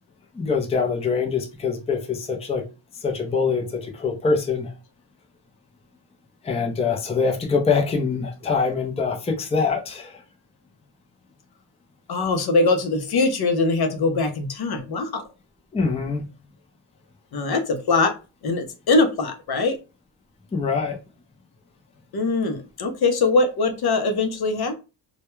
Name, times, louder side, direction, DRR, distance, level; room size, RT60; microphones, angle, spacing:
voice 1, 0.3-2.6 2.9-4.7 6.4-10.2 15.7-16.3 20.5-21.0, left 5 dB, 15° left, 0.4 m, -24 dB
voice 2, 12.1-15.3 17.3-19.8 22.1-24.7, left 3 dB, 55° left, 0.6 m, -22 dB
2.2 x 2.1 x 3.0 m
wide cardioid pair, 120°, 45 cm